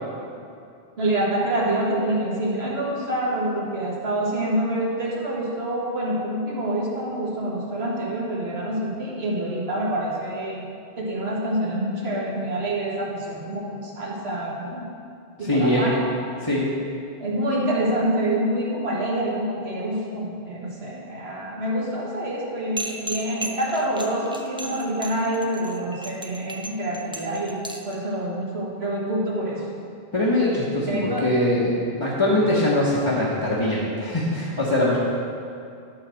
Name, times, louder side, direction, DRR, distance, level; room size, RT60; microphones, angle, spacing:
voice 1, 1.0-10.7 11.0-14.9 15.4-16.0 17.2-29.7 30.8-31.3, right 1 dB, 80° right, -4 dB, 1.9 m, -26 dB
voice 2, 15.4-15.9 16.4-16.7 30.1-35.0, left 1 dB, 25° left, -8 dB, 1.1 m, -22 dB
sound 1, 22.8-28.0, equal, 5° right, 0.5 m, -34 dB
12.0 x 4.0 x 6.3 m, 2.5 s
omnidirectional pair, 1.0 m